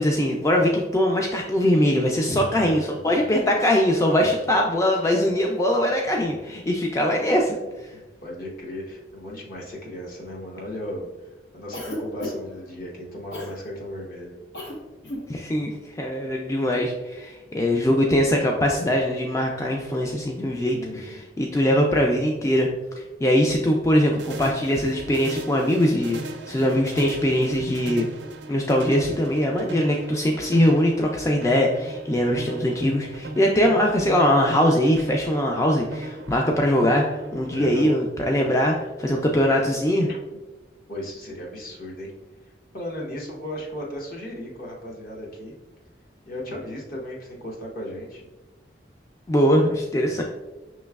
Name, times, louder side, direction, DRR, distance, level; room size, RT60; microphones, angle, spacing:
voice 1, 0.0-7.6 15.3-15.7 16.0-20.8 21.4-22.7 23.2-28.1 28.5-40.1 49.3-50.2, equal, 15° left, 1 dB, 0.3 m, -21 dB
voice 2, 2.3-3.1 7.9-11.1 11.5-14.4 20.7-21.2 37.5-38.0 40.1-40.2 40.9-42.1 42.7-45.6 46.3-48.3 50.0-50.2, left 1 dB, 55° left, -2 dB, 0.9 m, -36 dB
Cough, 11.7-12.6 13.3-13.6 14.5-14.8 15.0-15.3, left 1 dB, 80° left, 0.9 m, -33 dB
sound 1, 24.2-37.8, right 2 dB, 75° right, 0.5 m, -37 dB
5.6 x 3.0 x 2.3 m, 1.1 s
head